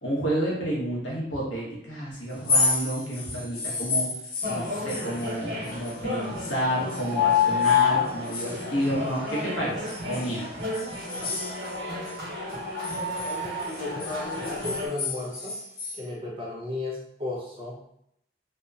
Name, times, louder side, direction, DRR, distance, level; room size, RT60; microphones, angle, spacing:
voice 1, 0.0-4.1 4.5-10.4, equal, 75° left, -5 dB, 0.9 m, -30 dB
sound 1, 2.3-6.6 6.9-9.4 9.9-12.2 12.5-16.0, left 3 dB, 50° left, 0.5 m, -32 dB
sound 2, 4.4-14.9, left 5 dB, 65° right, 1.0 m, -29 dB
voice 2, 13.2-15.5 15.9-17.8, left 2 dB, 30° right, -3 dB, 0.5 m, -34 dB
2.8 x 2.1 x 2.4 m, 0.76 s
head